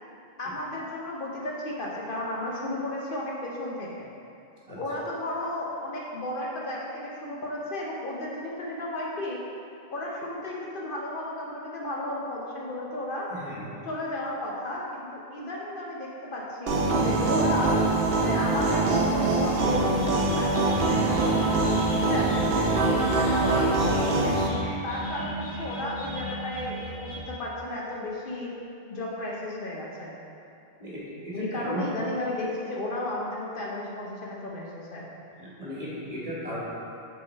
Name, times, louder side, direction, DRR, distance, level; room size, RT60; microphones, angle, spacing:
voice 1, 0.4-4.1 4.7-9.4 9.9-13.3 13.8-17.8 18.2-20.0 20.3-24.3 24.8-28.5 28.9-30.1 31.3-35.1, left 1 dB, 60° left, -4 dB, 0.9 m, -33 dB
voice 2, 13.3-13.6 30.8-31.8 35.4-36.6, equal, 35° right, -7 dB, 1.4 m, -36 dB
sound 1, 16.7-24.5, right 2 dB, 65° right, 0.9 m, -24 dB
sound 2, 19.6-27.2, equal, 80° left, 1.9 m, -36 dB
6.4 x 3.9 x 4.0 m, 2.6 s
omnidirectional pair, 1.1 m